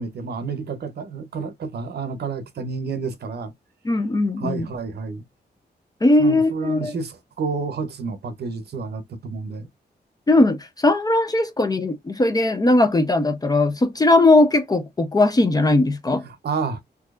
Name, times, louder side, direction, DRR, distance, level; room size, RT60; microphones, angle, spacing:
voice 1, 0.0-3.5 4.4-5.2 6.2-9.7 16.2-16.8, right 5 dB, 70° right, 0.7 m, -30 dB
voice 2, 3.8-4.7 6.0-6.9 10.3-16.2, left 2 dB, 20° left, 0.5 m, -19 dB
4.2 x 2.7 x 2.3 m
wide cardioid pair, 155°, 18 cm